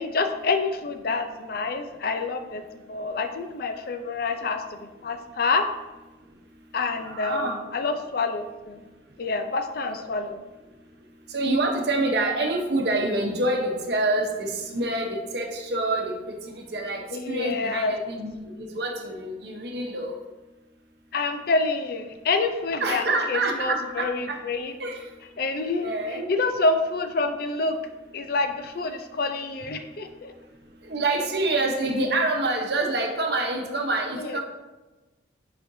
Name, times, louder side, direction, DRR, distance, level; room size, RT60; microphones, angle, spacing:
voice 1, 0.0-2.6 2.9-5.6 6.7-8.8 9.2-10.4 17.1-18.0 21.1-24.7 25.4-27.8 28.1-30.3 34.1-34.4, left 3 dB, 50° left, 7 dB, 0.5 m, -27 dB
voice 2, 7.0-7.6 9.9-10.0 11.3-18.3 18.7-20.1 22.8-24.4 24.8-25.0 25.8-26.2 30.9-34.4, right 2 dB, 60° right, 2 dB, 0.9 m, -26 dB
7.4 x 5.0 x 2.7 m, 1.1 s
head